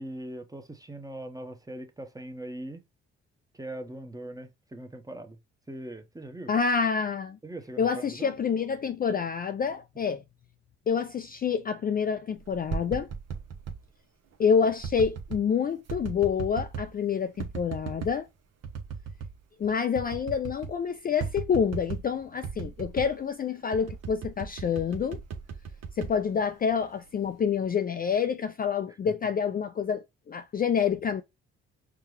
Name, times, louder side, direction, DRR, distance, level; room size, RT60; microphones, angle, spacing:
voice 1, 0.0-2.8 3.6-5.4 5.7-6.5 7.4-8.3, right 1 dB, 10° right, 0.9 m, -40 dB
voice 2, 6.5-7.4 7.8-10.2 10.9-13.1 14.4-18.3 19.6-25.2 26.0-31.2, left 6 dB, 30° left, 0.4 m, -27 dB
sound 1, 12.5-13.8 14.8-15.4 15.9-16.9 17.4-18.2 18.6-19.4 19.6-19.7 20.0-20.8 21.2-22.1 22.4-23.2 23.7-26.8 27.2-27.6, right 6 dB, 55° right, 0.8 m, -37 dB
4.7 x 2.2 x 3.2 m
hypercardioid pair, 50°, 30 cm